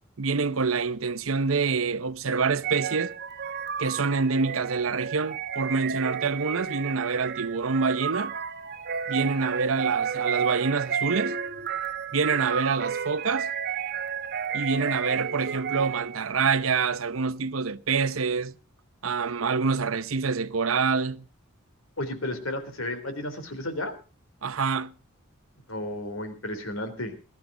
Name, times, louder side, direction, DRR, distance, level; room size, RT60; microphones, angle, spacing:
voice 1, 0.2-3.1 3.8-8.3 9.1-11.4 12.1-13.5 14.5-18.5 19.0-21.2 24.4-24.9, right 4 dB, 80° right, 0.8 m, -26 dB
sound 1, 2.6-16.3, right 7 dB, 55° right, 1.1 m, -32 dB
voice 2, 22.0-23.9 25.7-27.1, left 1 dB, 80° left, 3.5 m, -33 dB
21.0 x 12.0 x 3.8 m
head